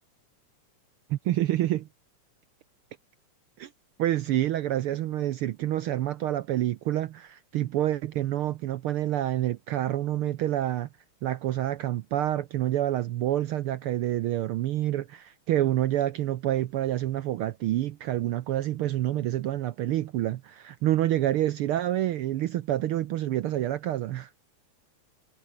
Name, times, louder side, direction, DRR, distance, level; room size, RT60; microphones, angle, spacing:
voice 1, 1.1-1.9 3.6-3.7 4.0-10.9 11.2-24.3, right 13 dB, 80° right, 1.2 m, -28 dB
omnidirectional pair, 3.3 m